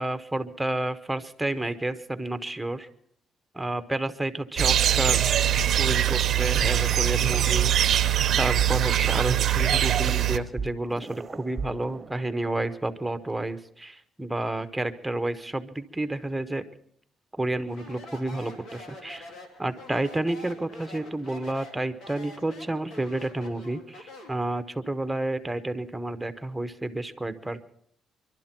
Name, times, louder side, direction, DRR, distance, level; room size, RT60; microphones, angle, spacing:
voice 1, 0.0-2.9 3.5-5.4 5.8-8.0 8.4-16.6 17.4-19.3 19.6-27.6, right 1 dB, 10° right, 10 dB, 1.2 m, -30 dB
sound 1, 4.6-5.7 5.9-6.2 6.6-6.7 7.2-8.2 8.6-12.6, right 4 dB, 30° right, 1.1 m, -35 dB
sound 2, 4.6-10.4, right 11 dB, 65° right, 0.8 m, -22 dB
Speech, 17.7-24.4, left 1 dB, 80° left, 2.8 m, -45 dB
24.5 x 12.0 x 4.5 m, 0.66 s
cardioid pair, 90°, 0 cm